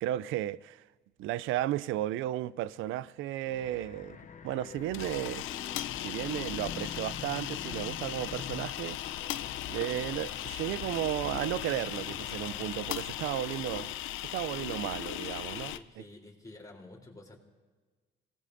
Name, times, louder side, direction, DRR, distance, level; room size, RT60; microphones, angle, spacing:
voice 1, 0.0-0.8 1.2-4.2 4.4-5.5 6.0-9.0 9.7-13.9 14.3-16.0, right 13 dB, 90° right, 0.4 m, -34 dB
sound 1, 3.4-14.0, left 6 dB, 40° left, 0.8 m, -47 dB
sound 2, 4.8-15.8, left 13 dB, 85° left, 0.5 m, -37 dB
voice 2, 15.7-17.4, left 2 dB, 20° left, 3.4 m, -50 dB
26.0 x 18.0 x 2.6 m
cardioid pair, 90°, 20 cm